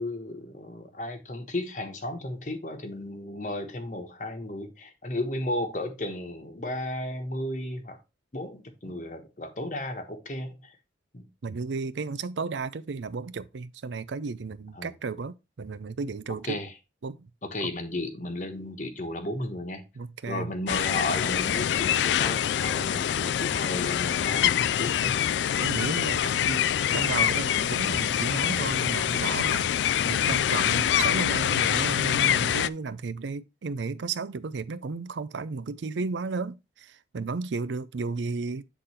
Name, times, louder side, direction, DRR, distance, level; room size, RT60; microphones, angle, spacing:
voice 1, 0.0-8.0 8.3-10.8 11.1-11.2 14.7-14.9 16.4-16.7 17.5-19.8 20.3-25.2, left 1 dB, 45° left, 1.1 m, -34 dB
voice 2, 11.4-16.6 17.0-17.3 17.6-17.7 20.0-20.5 25.6-26.6 26.9-29.7 30.0-38.6, right 4 dB, 85° right, 0.5 m, -33 dB
sound 1, 20.7-32.7, left 10 dB, 80° left, 0.3 m, -25 dB
8.3 x 3.8 x 4.2 m
head